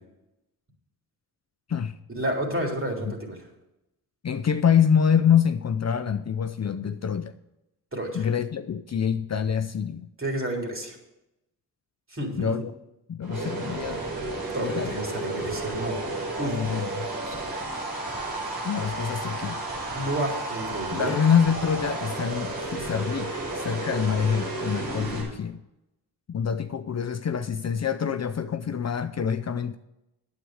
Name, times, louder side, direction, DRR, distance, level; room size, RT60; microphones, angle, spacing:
voice 1, 2.1-3.5 7.9-8.3 10.2-11.0 12.1-12.5 14.5-16.0 16.4-16.6 17.2-17.3 19.9-21.1, right 1 dB, 35° right, 3.5 m, -30 dB
voice 2, 4.2-7.3 8.1-10.1 12.4-12.7 13.1-14.0 14.6-14.9 16.5-17.1 18.6-19.6 20.9-25.6 26.3-29.8, left 7 dB, 45° left, 0.6 m, -26 dB
sound 1, 13.2-25.2, right 2 dB, 85° right, 5.3 m, -32 dB
9.2 x 8.5 x 6.4 m
cardioid pair, 70°, 38 cm